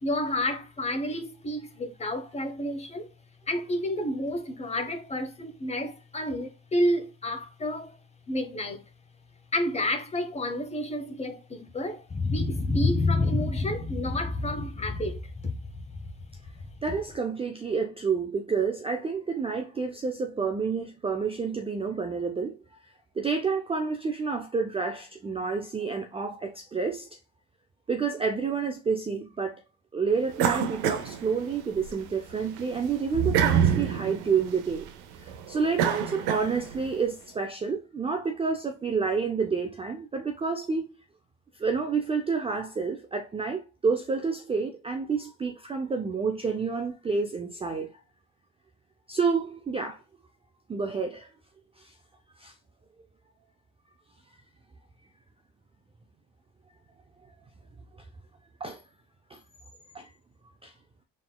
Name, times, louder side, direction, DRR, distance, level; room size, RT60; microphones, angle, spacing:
voice 1, 0.0-3.1 3.5-8.0 8.3-8.8 9.5-15.8, left 1 dB, 20° left, 0.8 m, -29 dB
voice 2, 16.8-22.6 23.2-27.1 27.9-29.6 29.9-34.9 35.2-40.9 41.5-47.9 49.1-50.0 50.7-51.3 51.8-51.9 52.4-52.5 58.6-58.8 59.3-59.4 59.9-60.1 60.6-60.7, right 5 dB, 15° right, 0.4 m, -29 dB
sound 1, 30.4-31.9 32.3-36.9, right 8 dB, 80° right, 0.7 m, -27 dB
4.0 x 3.7 x 2.2 m
cardioid pair, 110°, 37 cm